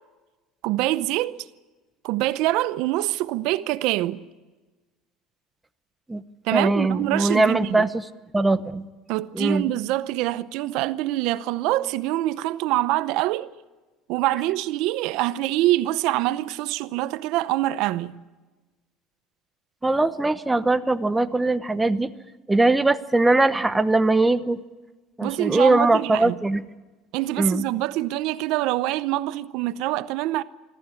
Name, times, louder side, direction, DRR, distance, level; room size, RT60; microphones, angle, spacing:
voice 1, 0.6-1.5 2.0-4.2 6.4-7.9 9.1-13.5 14.1-18.2 25.2-26.4 27.1-30.4, right 16 dB, 70° right, 0.7 m, -25 dB
voice 2, 6.5-7.9 8.3-8.9 9.3-9.7 19.8-22.1 22.5-24.6 25.2-26.6 27.4-27.6, right 2 dB, 10° right, 1.0 m, -21 dB
24.5 x 15.0 x 9.7 m
supercardioid pair, 115°, 0 cm